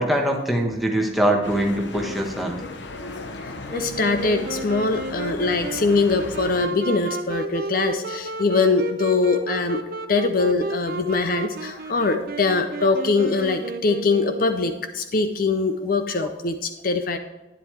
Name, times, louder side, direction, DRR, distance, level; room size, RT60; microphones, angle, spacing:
voice 1, 0.0-2.6 16.2-16.3, right 1 dB, ahead, 0 dB, 1.2 m, -23 dB
sound 1, 1.4-6.7, left 2 dB, 70° left, 0.9 m, -36 dB
voice 2, 3.7-9.8 10.1-17.2, left 3 dB, 45° left, 8 dB, 0.5 m, -22 dB
Wind instrument woodwind instrument, 3.7-14.8, right 2 dB, 50° right, 0.6 m, -32 dB
11.0 x 9.9 x 3.3 m, 1.1 s
head